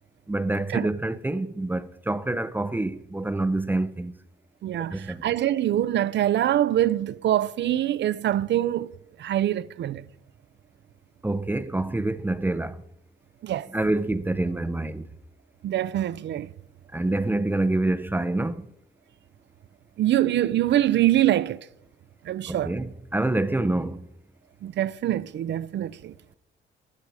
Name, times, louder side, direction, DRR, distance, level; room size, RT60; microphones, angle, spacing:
voice 1, 0.3-4.2 4.9-5.3 11.2-12.8 13.7-15.1 16.9-18.7 22.5-24.1, right 2 dB, 10° right, 0.7 m, -27 dB
voice 2, 4.6-8.9 9.2-10.0 13.4-13.7 15.6-16.5 20.0-21.6 22.2-22.7 24.6-26.1, right 12 dB, 65° right, 0.6 m, -24 dB
15.0 x 11.0 x 4.9 m
cardioid pair, 90°, 20 cm